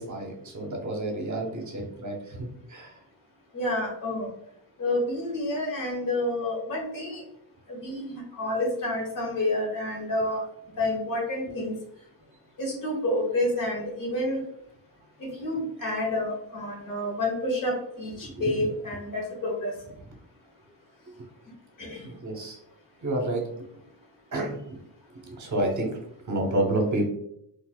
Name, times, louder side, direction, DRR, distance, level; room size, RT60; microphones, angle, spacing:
voice 1, 0.0-3.0 18.2-18.7 21.2-21.3 22.0-22.6 23.0-23.5 24.3-24.8 25.1-27.1, right 1 dB, 40° right, 2 dB, 0.8 m, -30 dB
voice 2, 3.5-4.3 4.8-7.2 7.7-10.4 10.8-11.7 12.6-14.4 15.2-19.7 21.8-22.1, left 1 dB, 45° left, -2 dB, 1.1 m, -29 dB
3.9 x 2.5 x 2.2 m, 0.73 s
wide cardioid pair, 150°, 45 cm